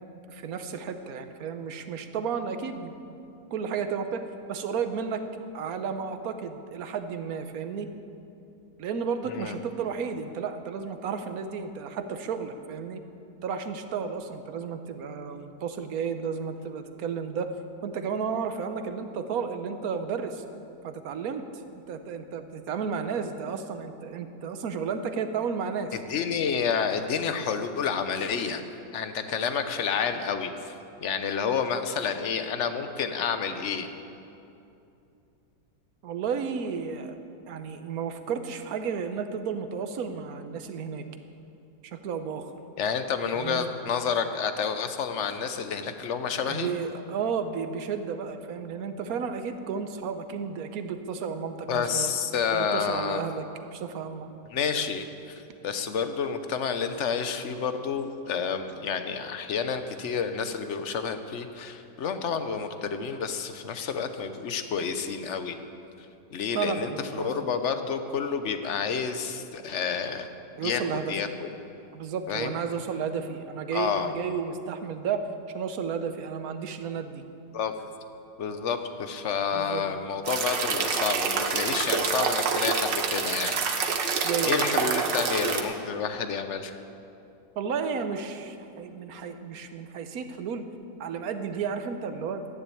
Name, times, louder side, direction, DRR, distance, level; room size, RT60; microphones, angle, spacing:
voice 1, 0.3-2.9 3.5-4.2 4.5-5.2 5.5-7.9 8.8-13.0 13.4-17.5 17.8-20.4 20.8-21.4 21.9-26.0 36.0-37.1 37.5-41.1 41.8-42.5 43.3-43.7 46.5-52.1 52.5-54.3 66.5-67.5 70.6-71.2 71.9-75.2 75.5-77.2 79.5-79.8 84.2-84.8 87.6-90.6 91.0-92.5, right 6 dB, 60° right, 8 dB, 1.3 m, -32 dB
voice 2, 25.9-28.6 28.9-30.7 31.0-33.9 42.8-46.7 51.7-53.2 54.5-65.6 66.3-70.3 70.6-70.8 71.1-71.5 72.3-72.6 73.7-74.2 77.5-77.8 78.4-83.6 84.4-86.8, left 6 dB, 50° left, 8 dB, 1.0 m, -29 dB
sound 1, 80.3-85.6, right 5 dB, 85° right, 1.8 m, -27 dB
12.5 x 10.5 x 8.5 m, 2.7 s
omnidirectional pair, 1.9 m